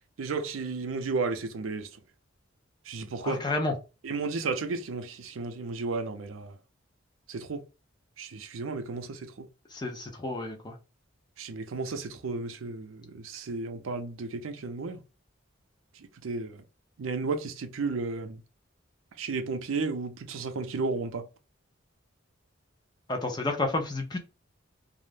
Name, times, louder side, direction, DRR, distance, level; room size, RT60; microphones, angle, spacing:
voice 1, 0.2-1.9 2.9-3.4 4.0-6.5 7.3-7.6 8.2-9.5 11.4-15.0 16.2-16.6 17.0-18.4 19.2-21.2, right 3 dB, 80° right, 0.5 m, -33 dB
voice 2, 3.2-3.7 9.7-10.7 23.1-24.2, left 2 dB, 20° left, 0.5 m, -30 dB
2.4 x 2.1 x 3.2 m
head